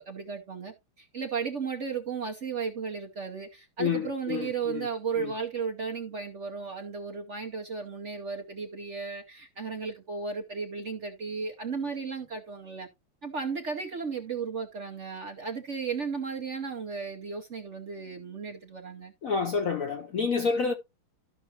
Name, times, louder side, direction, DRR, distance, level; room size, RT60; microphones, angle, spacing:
voice 1, 0.0-12.9 13.2-19.1, right 5 dB, 50° right, 0.9 m, -35 dB
voice 2, 3.8-4.9 5.2-5.3 19.2-20.7, left 5 dB, 60° left, 0.9 m, -29 dB
13.0 x 6.0 x 2.9 m
omnidirectional pair, 2.2 m